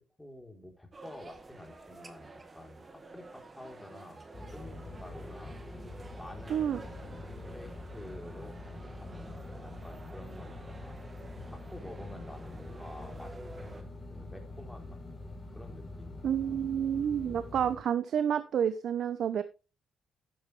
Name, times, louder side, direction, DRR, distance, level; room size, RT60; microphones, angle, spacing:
voice 1, 0.2-5.6 6.2-15.0 15.5-16.5, left 1 dB, 5° left, 2 dB, 3.7 m, -50 dB
sound 1, 0.9-13.8, right 3 dB, 25° right, 1.8 m, -50 dB
sound 2, 4.3-17.8, left 2 dB, 30° left, 4.2 m, -45 dB
voice 2, 6.5-6.8 16.2-19.4, right 9 dB, 65° right, 12 dB, 0.8 m, -29 dB
12.0 x 9.4 x 3.3 m, 0.31 s
cardioid pair, 90°, 0 cm